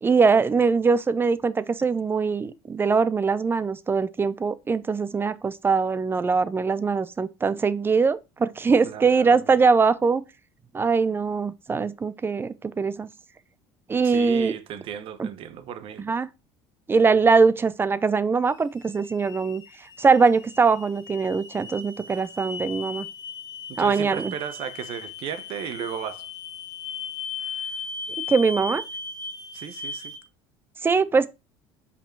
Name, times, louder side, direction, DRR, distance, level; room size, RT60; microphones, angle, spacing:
voice 1, 0.0-10.2 10.7-13.1 13.9-14.5 15.2-15.3 16.0-16.3 16.9-19.6 20.0-23.1 23.8-24.3 28.3-28.8 30.8-31.3, right 5 dB, 20° right, 0.6 m, -22 dB
voice 2, 8.8-9.5 14.0-16.0 23.7-26.3 27.4-27.8 29.5-30.1, right 9 dB, 55° right, 1.0 m, -35 dB
sound 1, 18.5-30.2, left 4 dB, 40° left, 1.6 m, -37 dB
5.6 x 4.9 x 4.5 m
supercardioid pair, 105°, 11 cm